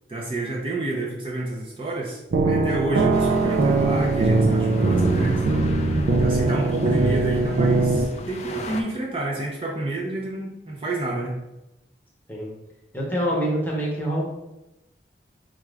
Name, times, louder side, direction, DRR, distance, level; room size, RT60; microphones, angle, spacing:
voice 1, 0.1-5.8 6.2-11.4, right 2 dB, 30° right, -3 dB, 0.5 m, -29 dB
sound 1, 2.3-8.1, right 3 dB, 80° right, 0.4 m, -21 dB
sound 2, 3.1-8.8, left 2 dB, 35° left, 0.3 m, -37 dB
voice 2, 12.9-14.3, equal, 10° left, -4 dB, 0.8 m, -25 dB
4.6 x 2.5 x 3.2 m, 0.95 s
head